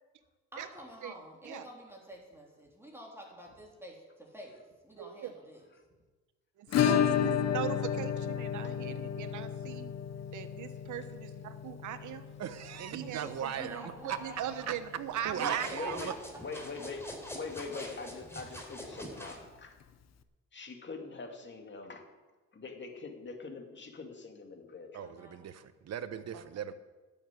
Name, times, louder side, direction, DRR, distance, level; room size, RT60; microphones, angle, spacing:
voice 1, 0.5-4.0 4.3-4.6 4.8-5.7 13.0-14.7 15.1-15.2 15.6-15.7 16.1-16.2 25.0-25.5, equal, 10° right, -2 dB, 3.4 m, -49 dB
voice 2, 5.0-5.3 6.6-9.9 10.3-12.3 12.8-13.9 14.2-16.0 26.3-26.4, right 10 dB, 75° right, 10 dB, 1.2 m, -39 dB
Acoustic guitar / Strum, 6.7-15.3 15.6-15.7 16.0-16.1 16.4-16.5 18.6-18.7 19.8-19.9, left 9 dB, 60° left, 0.9 m, -33 dB
voice 3, 12.4-14.2 15.2-16.1 24.9-26.7, right 9 dB, 60° right, 12 dB, 1.0 m, -38 dB
sound 1, 15.2-19.4, equal, 10° left, 3.6 m, -45 dB
voice 4, 15.4-16.1 16.4-17.1 17.3-19.7 20.5-22.1 22.5-25.1, left 4 dB, 40° left, 4 dB, 2.3 m, -43 dB
12.0 x 7.2 x 9.6 m, 1.2 s
cardioid pair, 90°, 30 cm